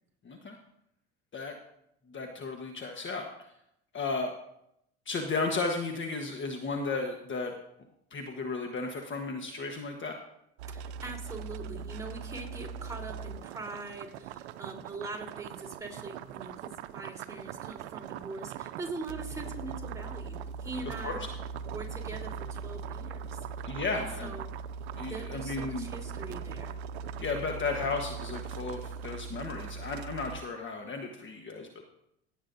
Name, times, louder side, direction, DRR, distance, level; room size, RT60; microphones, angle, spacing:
voice 1, 0.2-0.6 1.3-1.5 2.1-3.3 3.9-4.3 5.1-7.5 8.1-10.2 20.8-21.3 23.6-24.3 25.0-25.9 27.2-31.8, left 3 dB, 35° left, 3 dB, 1.3 m, -34 dB
sound 1, 10.6-30.4, right 6 dB, 90° right, 0.5 m, -40 dB
voice 2, 10.7-21.2 21.7-23.4 23.9-24.5 25.0-26.8, right 3 dB, 10° right, -2 dB, 3.7 m, -42 dB
17.5 x 8.6 x 2.7 m, 0.78 s
hypercardioid pair, 75°, 32 cm